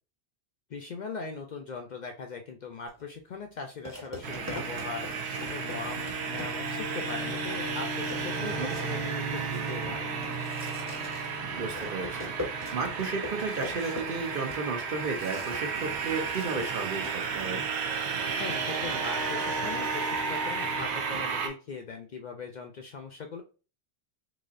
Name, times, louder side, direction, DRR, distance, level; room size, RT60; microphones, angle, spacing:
voice 1, 0.7-5.1 5.5-10.1 18.4-23.4, left 4 dB, 55° left, 4 dB, 0.5 m, -40 dB
sound 1, 2.9-3.0 3.8-6.8 7.3-7.4 7.6-15.8 16.0-17.2, left 1 dB, 15° right, 1.2 m, -42 dB
sound 2, 4.2-21.5, right 5 dB, 90° right, 1.0 m, -33 dB
voice 2, 8.4-8.7 11.6-17.7, right 4 dB, 60° right, 4 dB, 0.9 m, -33 dB
4.0 x 2.8 x 2.5 m, 0.34 s
omnidirectional pair, 1.1 m